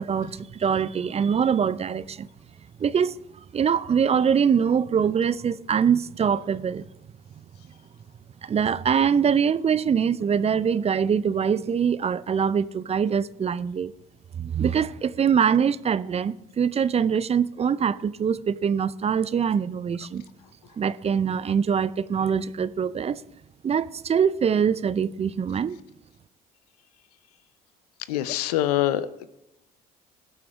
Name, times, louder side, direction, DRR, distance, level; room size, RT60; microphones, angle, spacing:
voice 1, 0.0-2.3 2.8-3.2 3.5-6.8 8.4-13.9 14.4-20.2 20.8-23.2 23.6-25.8, right 7 dB, 30° right, 0.5 m, -23 dB
voice 2, 28.1-29.3, left 13 dB, 85° left, 0.5 m, -25 dB
16.5 x 5.7 x 4.8 m
hypercardioid pair, 60°, 20 cm